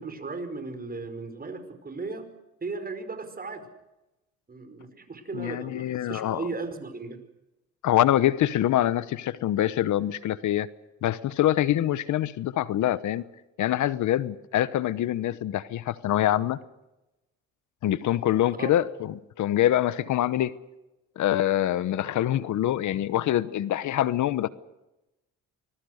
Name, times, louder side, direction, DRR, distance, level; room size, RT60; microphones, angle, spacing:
voice 1, 0.0-2.3 2.6-3.7 4.5-7.2 18.6-18.8, right 3 dB, 30° right, 9 dB, 5.2 m, -36 dB
voice 2, 5.3-6.4 7.8-10.7 11.0-13.2 13.6-16.6 17.8-20.5 21.2-24.5, left 12 dB, 75° left, 16 dB, 1.0 m, -25 dB
25.0 x 21.0 x 6.6 m, 0.96 s
cardioid pair, 90°, 30 cm